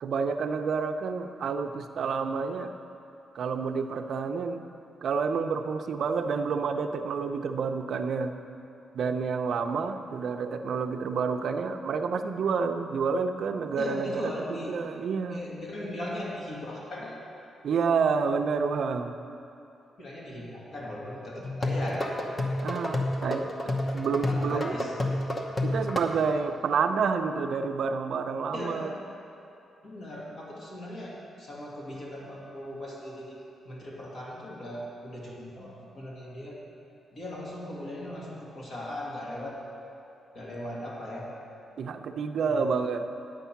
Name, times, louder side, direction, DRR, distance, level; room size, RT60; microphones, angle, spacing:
voice 1, 0.0-2.7 3.3-4.6 5.0-8.3 8.9-15.4 17.6-19.1 22.6-24.8 25.6-28.9 41.8-43.1, right 5 dB, 65° right, 6 dB, 0.5 m, -29 dB
voice 2, 13.8-14.8 15.3-17.1 20.0-22.1 24.3-24.9 28.5-29.0 29.8-33.4 33.6-36.6 37.1-39.6 40.3-41.2 42.4-42.6, left 1 dB, 55° left, -4 dB, 2.1 m, -38 dB
sound 1, 21.4-26.0, left 1 dB, 25° left, 0.9 m, -29 dB
9.3 x 8.2 x 5.8 m, 2.8 s
cardioid pair, 130°, 0 cm